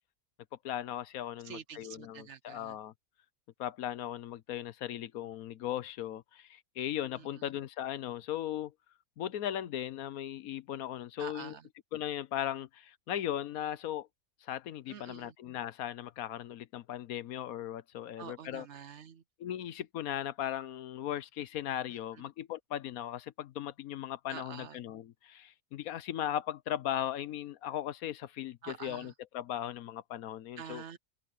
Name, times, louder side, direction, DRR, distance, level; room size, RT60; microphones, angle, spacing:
voice 1, 0.6-2.9 3.6-8.7 9.2-11.5 11.9-14.1 14.4-18.6 19.4-30.8, left 11 dB, 75° left, 1.2 m, -38 dB
voice 2, 1.4-2.8 7.1-7.5 11.2-11.7 14.9-15.4 18.2-19.2 21.9-22.3 24.3-24.8 28.6-29.1 30.6-31.0, right 8 dB, 60° right, 0.9 m, -47 dB
omnidirectional pair, 1.6 m